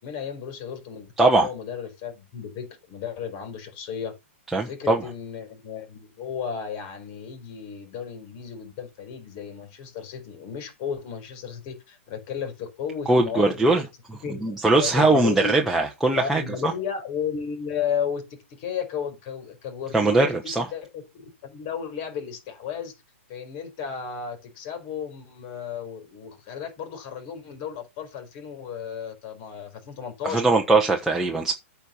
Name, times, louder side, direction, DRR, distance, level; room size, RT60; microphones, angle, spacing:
voice 1, 0.0-4.2 4.6-13.7 14.2-15.5 16.1-22.9 23.3-30.4, left 7 dB, 40° left, 4.5 m, -34 dB
voice 2, 1.2-1.5 4.5-5.0 13.1-13.8 14.1-16.7 19.9-20.6 30.2-31.5, right 2 dB, 5° right, 1.1 m, -21 dB
9.0 x 4.5 x 7.1 m
hypercardioid pair, 145°, 7 cm